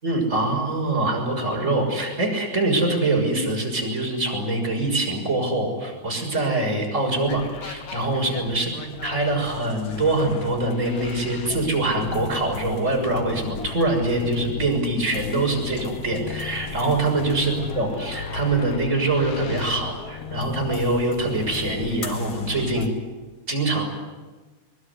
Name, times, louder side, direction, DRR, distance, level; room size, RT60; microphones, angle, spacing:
voice 1, 0.0-8.7 9.0-22.9 23.5-23.8, right 2 dB, 25° right, 0 dB, 7.0 m, -24 dB
sound 1, 7.2-22.9, left 5 dB, 55° left, 2.6 m, -35 dB
24.0 x 21.5 x 9.8 m, 1.3 s
omnidirectional pair, 3.4 m